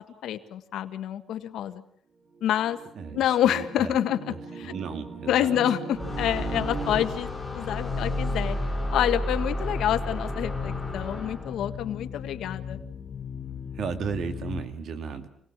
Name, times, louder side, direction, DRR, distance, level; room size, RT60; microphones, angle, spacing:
voice 1, 0.2-1.8 2.4-2.8 3.1-4.7 5.3-8.6 8.9-12.8, left 11 dB, 80° left, 9 dB, 1.6 m, -27 dB
sound 1, 2.3-7.1, right 3 dB, 40° right, 4.1 m, -39 dB
voice 2, 3.0-3.9 4.6-5.5 13.7-15.3, right 6 dB, 60° right, 9 dB, 2.5 m, -34 dB
sound 2, 5.9-11.7, equal, 5° left, 7.3 m, -32 dB
sound 3, 6.0-14.6, left 7 dB, 45° left, 1.4 m, -37 dB
26.5 x 19.0 x 7.5 m, 0.67 s
cardioid pair, 115°, 0 cm